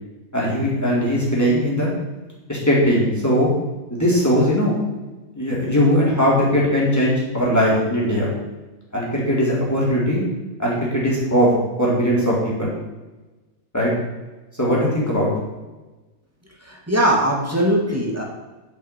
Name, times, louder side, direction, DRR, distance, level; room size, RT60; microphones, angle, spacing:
voice 1, 0.3-1.9 2.5-3.5 3.9-4.8 5.4-8.3 8.9-10.2 10.6-11.5 11.8-12.7 13.7-13.9 14.6-15.3, equal, 10° left, -6 dB, 3.7 m, -19 dB
voice 2, 16.6-18.2, right 1 dB, 10° right, -2 dB, 2.3 m, -20 dB
7.8 x 7.1 x 8.5 m, 1.1 s
omnidirectional pair, 1.8 m